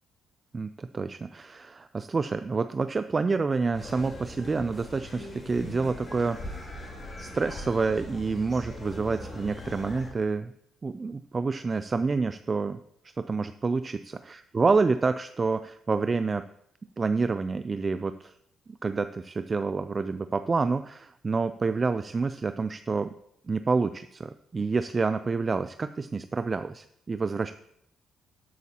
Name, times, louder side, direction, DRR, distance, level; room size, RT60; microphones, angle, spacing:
voice 1, 0.5-6.5 7.2-10.5 10.8-12.8 13.2-16.5 17.0-18.3 18.7-23.1 23.5-27.5, right 4 dB, 30° right, 11 dB, 0.3 m, -28 dB
sound 1, 3.7-10.1, left 1 dB, 25° left, 3.7 m, -41 dB
12.0 x 8.0 x 2.9 m, 0.73 s
cardioid pair, 90°, 0 cm